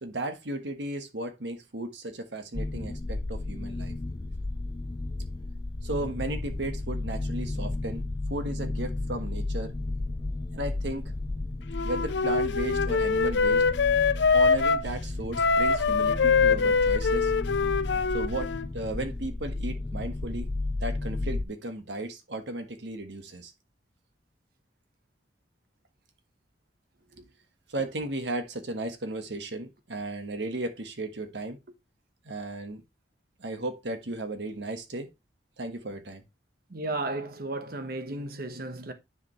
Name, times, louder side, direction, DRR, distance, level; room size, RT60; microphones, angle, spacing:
voice 1, 0.0-3.9 5.8-8.0 8.3-9.7 10.5-11.1 11.8-13.6 14.3-17.3 18.1-20.5 20.8-23.5 27.7-31.6 32.2-32.8 33.4-35.1 35.6-36.2, right 2 dB, 75° right, 1.5 m, -35 dB
sound 1, 2.5-21.4, left 2 dB, 20° left, 0.4 m, -33 dB
Wind instrument woodwind instrument, 11.7-14.9 15.3-18.7, left 5 dB, 70° left, 0.5 m, -24 dB
voice 2, 36.7-38.9, right 2 dB, 55° right, 1.2 m, -34 dB
9.6 x 5.1 x 3.1 m
head